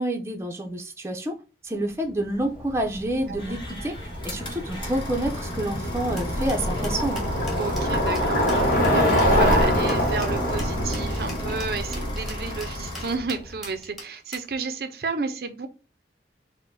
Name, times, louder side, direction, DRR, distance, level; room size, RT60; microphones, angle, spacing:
voice 1, 0.0-1.3 1.6-3.9 4.2-7.3, right 1 dB, 15° right, 0.6 m, -28 dB
Bicycle, 2.6-13.5, equal, 50° left, 1.2 m, -25 dB
sound 1, 3.4-13.2, left 2 dB, 30° left, 1.3 m, -38 dB
sound 2, 6.2-14.5, equal, ahead, 1.2 m, -41 dB
voice 2, 7.6-15.7, right 4 dB, 60° right, 0.5 m, -31 dB
4.7 x 2.1 x 4.6 m
head